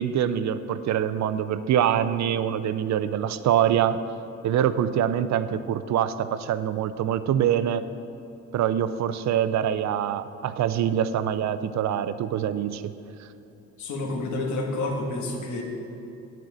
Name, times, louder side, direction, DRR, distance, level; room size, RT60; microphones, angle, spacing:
voice 1, 0.0-4.0 4.4-7.8 8.5-12.9, right 10 dB, 65° right, 13 dB, 0.6 m, -24 dB
voice 2, 13.8-15.6, left 2 dB, 70° left, 1 dB, 1.8 m, -29 dB
7.9 x 7.5 x 8.0 m, 2.7 s
cardioid pair, 90°, 30 cm